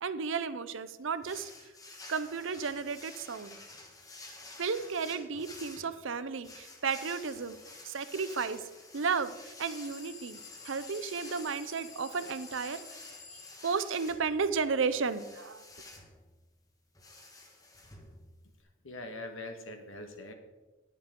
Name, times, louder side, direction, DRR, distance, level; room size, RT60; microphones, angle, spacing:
voice 1, 0.0-1.5 2.1-3.6 4.6-7.6 7.8-8.7 8.9-15.6, right 5 dB, 70° right, 13 dB, 0.6 m, -33 dB
sound 1, 1.2-18.6, left 2 dB, 15° left, 1.3 m, -51 dB
sound 2, 9.6-13.6, left 5 dB, 35° left, 2.6 m, -50 dB
voice 2, 18.8-20.3, left 2 dB, 75° left, 5 dB, 1.6 m, -42 dB
19.0 x 6.6 x 3.8 m, 1.1 s
head